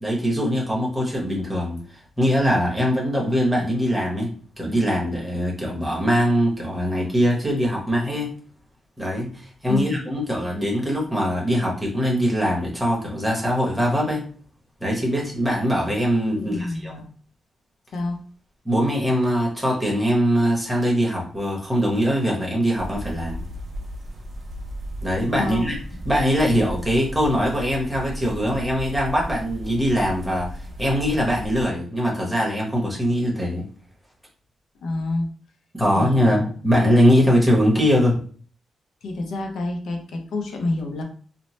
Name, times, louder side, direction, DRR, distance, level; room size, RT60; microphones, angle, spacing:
voice 1, 0.0-1.8 2.2-4.3 4.6-8.3 9.0-14.2 14.8-16.9 18.6-23.5 25.0-25.8 26.1-33.7 35.8-38.2, equal, 5° right, -3 dB, 0.8 m, -22 dB
voice 2, 16.4-17.0 17.9-18.2 25.3-25.6 34.8-35.3 35.9-36.5 39.0-41.0, left 2 dB, 75° left, 3 dB, 0.5 m, -28 dB
sound 1, 22.8-31.7, equal, 40° right, 0.5 m, -35 dB
2.8 x 2.0 x 3.0 m, 0.43 s
wide cardioid pair, 180°, 0 cm